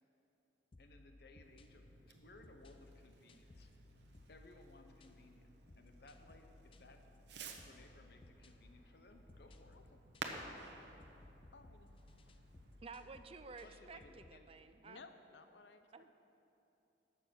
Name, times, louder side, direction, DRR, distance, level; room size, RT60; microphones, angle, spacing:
sound 1, 0.7-14.4, left 2 dB, 30° left, 0.5 m, -62 dB
voice 1, 0.8-3.7 4.3-7.0 7.3-9.8 13.6-14.5, left 2 dB, 60° left, 5 dB, 0.9 m, -61 dB
Fireworks, 1.4-12.8, right 3 dB, 75° right, 0.9 m, -54 dB
voice 2, 11.5-12.0 12.3-12.4 14.8-15.8, left 4 dB, 85° left, 9 dB, 0.7 m, -58 dB
voice 3, 12.8-15.0 15.9-16.1, right 4 dB, 35° right, 10 dB, 0.4 m, -53 dB
11.5 x 7.3 x 6.2 m, 2.9 s
head